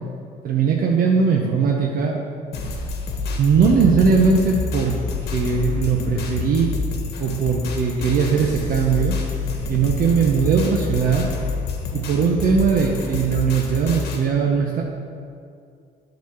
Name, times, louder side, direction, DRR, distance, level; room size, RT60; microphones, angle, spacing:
voice 1, 0.4-2.2 3.4-4.9 5.3-6.7 7.2-9.1 9.7-11.3 11.9-14.8, right 5 dB, 60° right, 0 dB, 0.8 m, -19 dB
sound 1, 2.5-14.2, left 4 dB, 70° left, 1.2 m, -28 dB
8.4 x 4.1 x 6.7 m, 2.3 s
cardioid pair, 110°, 17 cm